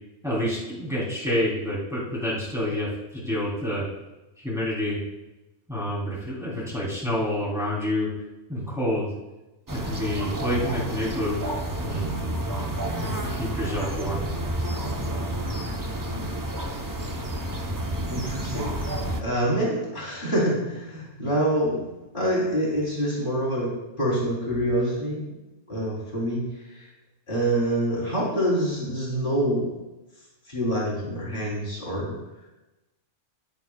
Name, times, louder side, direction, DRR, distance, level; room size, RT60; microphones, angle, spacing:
voice 1, 0.2-3.8 4.4-5.0 5.7-8.1 8.5-9.1 9.7-11.4 11.8-12.2 13.0-14.2, left 1 dB, ahead, -6 dB, 3.2 m, -28 dB
sound 1, 9.7-19.2, right 1 dB, 20° right, 0.7 m, -30 dB
voice 2, 18.1-18.7 19.2-21.9 22.1-23.7 24.0-25.3 25.7-26.4 26.8-26.9 27.3-29.7 30.5-32.2, right 1 dB, 40° left, -5 dB, 3.6 m, -26 dB
15.5 x 10.0 x 2.3 m, 1.0 s
omnidirectional pair, 1.3 m